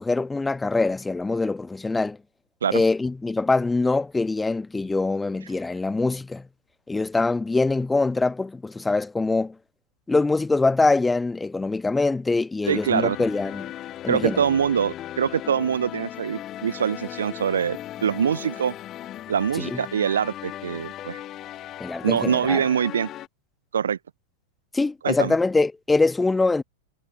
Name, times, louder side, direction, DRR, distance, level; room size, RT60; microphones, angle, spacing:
voice 1, 0.0-2.2 2.7-6.5 6.9-9.5 10.1-13.7 14.0-14.4 19.6-19.8 21.8-22.6 24.7-26.6, left 3 dB, 10° left, 1.4 m, -23 dB
sound 1, 12.6-23.3, left 13 dB, 30° left, 1.4 m, -37 dB
voice 2, 12.7-13.2 14.1-18.7 19.3-21.2 22.0-23.1 23.7-24.0 25.0-25.4, right 8 dB, 65° right, 0.6 m, -24 dB
figure-of-eight pair, 90°, 0 cm